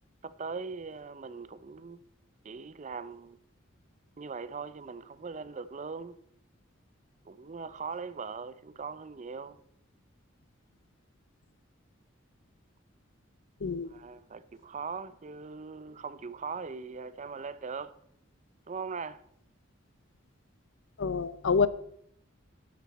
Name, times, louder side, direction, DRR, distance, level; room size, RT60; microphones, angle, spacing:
voice 1, 0.2-2.0 2.4-3.4 4.2-6.2 7.2-9.6 13.9-18.0 18.7-19.2, right 5 dB, 35° right, 0.5 m, -40 dB
voice 2, 13.6-14.0 21.0-21.7, left 5 dB, 65° left, 0.6 m, -27 dB
13.0 x 9.4 x 4.1 m
head